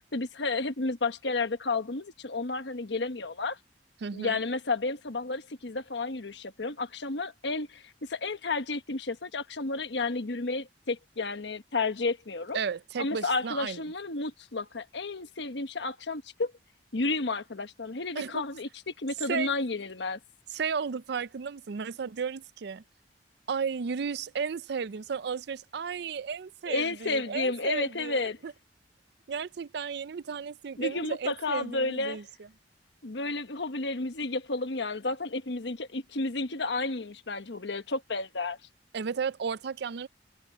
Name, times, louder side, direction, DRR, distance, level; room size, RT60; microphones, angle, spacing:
voice 1, 0.1-3.6 4.1-12.6 13.0-16.5 16.9-20.2 26.7-28.4 30.8-32.2 33.0-38.6, left 3 dB, 80° left, 1.2 m, -32 dB
voice 2, 4.0-4.4 12.5-13.8 18.2-18.4 19.3-19.5 20.5-22.8 23.5-28.2 28.4-28.5 29.3-32.2 38.9-40.1, right 6 dB, 65° right, 0.5 m, -34 dB
head